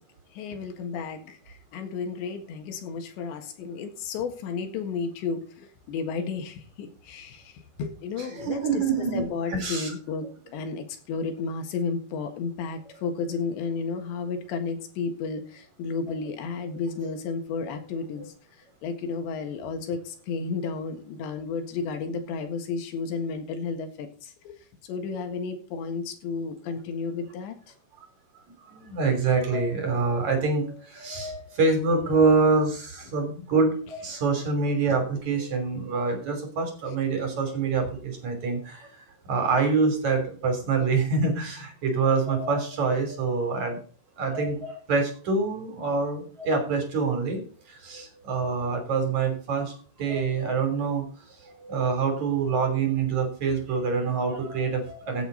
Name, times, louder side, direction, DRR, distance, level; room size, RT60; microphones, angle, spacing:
voice 1, 0.4-7.5 7.8-8.8 9.1-18.3 18.8-24.6 24.9-27.6, left 5 dB, 85° left, 6 dB, 4.0 m, -32 dB
voice 2, 8.4-9.2 9.5-9.9 28.7-38.9 39.3-43.8 44.2-47.4 47.8-51.0 51.6-55.3, right 4 dB, 45° right, 5 dB, 4.1 m, -26 dB
16.0 x 8.2 x 4.0 m, 0.41 s
omnidirectional pair, 5.0 m